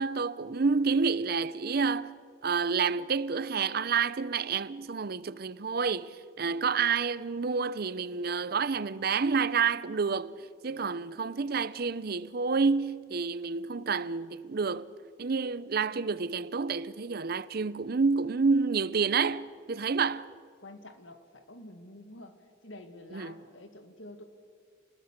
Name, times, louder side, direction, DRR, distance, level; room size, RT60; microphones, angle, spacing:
voice 1, 0.0-10.4 10.6-14.9 15.2-20.3 23.1-23.3, right 5 dB, 55° right, 0.6 m, -29 dB
voice 2, 6.4-6.7 10.7-11.1 20.6-24.2, left 1 dB, 85° left, 2.2 m, -49 dB
28.5 x 20.0 x 6.7 m
head